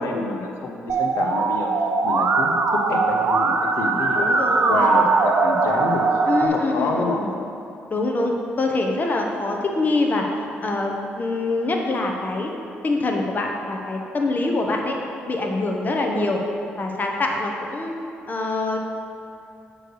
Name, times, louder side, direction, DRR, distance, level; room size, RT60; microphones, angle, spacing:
voice 1, 0.0-1.7 2.0-4.3 4.7-6.1 6.4-7.2, left 3 dB, 80° left, 2 dB, 0.8 m, -27 dB
Musical instrument, 0.9-6.5, right 4 dB, 60° right, 0.7 m, -20 dB
voice 2, 4.1-5.0 6.3-7.3 7.9-10.3 10.6-12.5 12.8-15.0 15.3-16.4 16.8-18.0 18.3-18.8, left 2 dB, 40° left, 1 dB, 1.0 m, -24 dB
7.8 x 3.2 x 6.3 m, 2.7 s
supercardioid pair, 65°, 5 cm